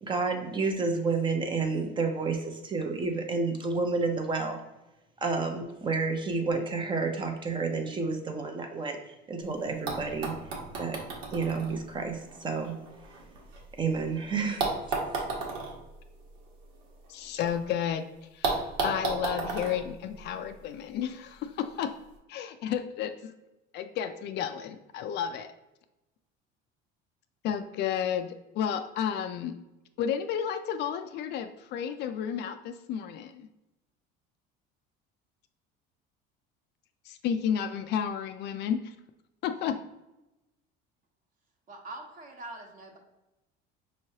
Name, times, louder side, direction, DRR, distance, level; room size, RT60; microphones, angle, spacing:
voice 1, 0.0-4.6 5.2-10.4 10.7-11.0 11.3-12.8 13.8-14.7, right 4 dB, 20° right, 4 dB, 0.6 m, -30 dB
sound 1, 9.4-9.5 9.9-13.9 14.6-17.5 17.8-17.9 18.4-20.8 21.8-21.9, right 4 dB, 85° right, 1.3 m, -34 dB
voice 2, 17.1-18.0 18.3-21.9 22.3-23.3 23.7-25.5 27.4-29.5 30.0-33.5 37.1-38.9 39.4-39.7, left 8 dB, 55° left, 9 dB, 0.4 m, -32 dB
voice 3, 41.7-43.0, right 2 dB, 40° right, 2 dB, 1.0 m, -43 dB
5.5 x 3.0 x 2.8 m, 0.97 s
cardioid pair, 135°, 21 cm